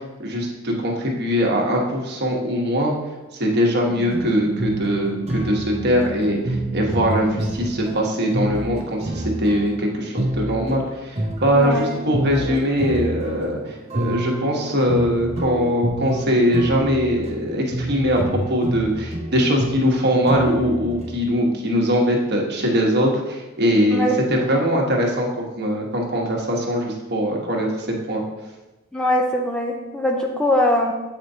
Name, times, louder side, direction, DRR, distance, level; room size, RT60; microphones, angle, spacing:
voice 1, 0.2-2.9 3.4-18.2 18.5-28.2, equal, 55° right, 0 dB, 1.2 m, -21 dB
sound 1, 3.9-7.8, right 5 dB, 75° right, 0.6 m, -33 dB
sound 2, 4.1-10.8 11.2-21.1, right 1 dB, 30° right, 0.7 m, -28 dB
voice 2, 11.6-12.0 12.5-12.6 23.9-24.1 24.5-24.7 28.9-30.9, left 1 dB, 5° left, 0 dB, 0.4 m, -22 dB
8.2 x 4.4 x 2.7 m, 1.1 s
head